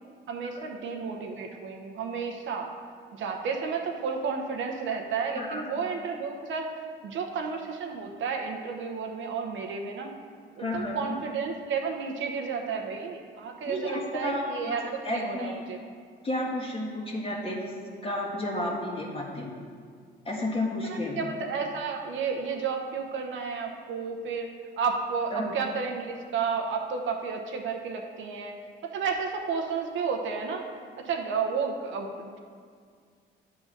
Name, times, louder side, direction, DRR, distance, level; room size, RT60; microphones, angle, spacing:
voice 1, 0.3-2.7 3.2-6.7 7.0-10.1 10.5-14.8 15.1-15.8 20.9-24.5 24.8-28.6 28.9-30.6 31.0-32.4, right 5 dB, 75° right, 3 dB, 0.9 m, -32 dB
voice 2, 5.3-5.8 10.6-11.0 13.6-14.8 15.0-15.7 16.2-17.7 18.0-19.5 20.2-21.3 25.3-25.6, left 1 dB, 30° left, -2 dB, 1.7 m, -32 dB
9.3 x 3.9 x 6.5 m, 2.1 s
cardioid pair, 90°, 20 cm